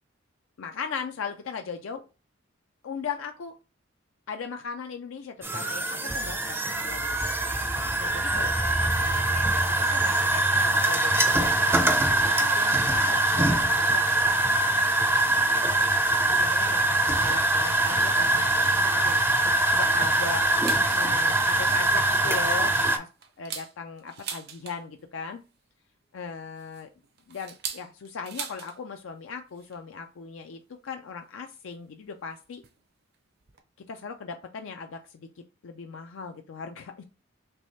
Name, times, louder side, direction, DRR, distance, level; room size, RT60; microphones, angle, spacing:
voice 1, 0.6-2.0 2.8-3.6 4.3-7.3 8.0-14.3 15.3-19.2 19.7-20.5 20.9-23.1 23.4-25.4 26.1-26.9 27.3-32.6 33.9-35.3 35.6-37.0, left 5 dB, 70° left, 5 dB, 0.4 m, -38 dB
sound 1, 5.4-23.0, right 2 dB, 10° right, 0.5 m, -23 dB
sound 2, 20.4-21.1 21.5-21.6 22.0-22.3 22.7-25.0 26.2-28.8 29.1-29.2 29.5-29.8 30.7-30.8 31.7-31.8 32.6-32.8 33.1-33.2 33.4-33.6, right 7 dB, 55° right, 0.6 m, -40 dB
3.4 x 3.1 x 4.0 m, 0.32 s
head